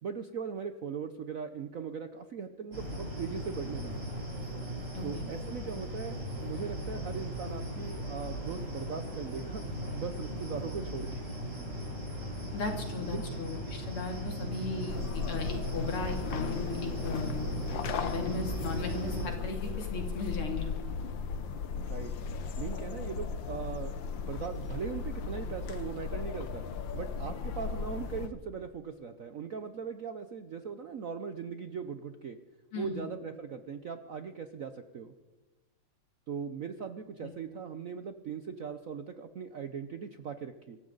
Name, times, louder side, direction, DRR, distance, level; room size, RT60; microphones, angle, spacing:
voice 1, 0.0-4.1 5.0-11.2 13.1-13.2 21.8-22.1 22.6-26.6 26.9-32.4 32.8-35.1 36.3-40.8, right 6 dB, 65° right, 9 dB, 0.8 m, -39 dB
sound 1, 2.7-19.3, equal, 25° right, 5.0 m, -38 dB
voice 2, 4.9-5.2 12.5-17.5 18.0-20.7 32.7-33.1 37.2-37.3, left 3 dB, 85° left, 3 dB, 3.4 m, -37 dB
sound 2, 14.9-28.3, left 5 dB, 65° left, 1.6 m, -37 dB
25.5 x 14.0 x 4.0 m, 1.1 s
omnidirectional pair, 2.4 m